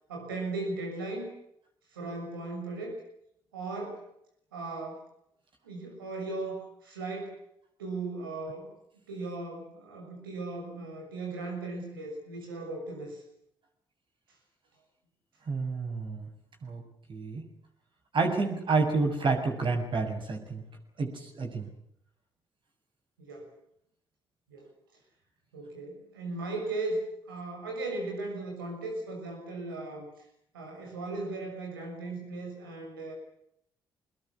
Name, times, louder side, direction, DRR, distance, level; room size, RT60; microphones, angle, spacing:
voice 1, 0.1-1.4 1.9-3.0 3.5-4.0 4.5-5.0 5.6-7.4 7.8-8.7 9.1-13.2 23.2-23.5 24.5-24.7 25.5-30.2 30.5-33.1, right 2 dB, 85° right, 1 dB, 6.5 m, -37 dB
voice 2, 15.5-16.3 16.6-16.8 17.1-17.4 18.1-20.6 21.0-21.7, right 4 dB, 45° right, 3 dB, 7.5 m, -29 dB
26.0 x 21.0 x 8.5 m, 0.74 s
figure-of-eight pair, 40°, 11 cm